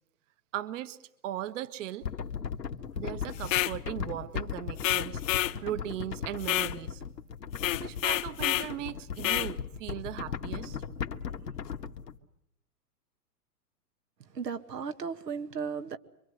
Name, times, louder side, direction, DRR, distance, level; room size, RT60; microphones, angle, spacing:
voice 1, 0.5-1.0 1.2-2.1 3.0-7.0 7.8-10.8, right 12 dB, 50° right, 12 dB, 1.6 m, -38 dB
sound 1, 2.0-12.1, left 7 dB, 90° left, 1.9 m, -37 dB
sound 2, 3.4-3.8 4.8-5.6 6.4-6.8 7.6-8.7 9.2-9.5, left 15 dB, 55° left, 1.1 m, -28 dB
voice 2, 14.3-16.0, right 6 dB, 80° right, 9 dB, 2.0 m, -35 dB
27.0 x 24.0 x 8.0 m, 0.78 s
hypercardioid pair, 125°, 48 cm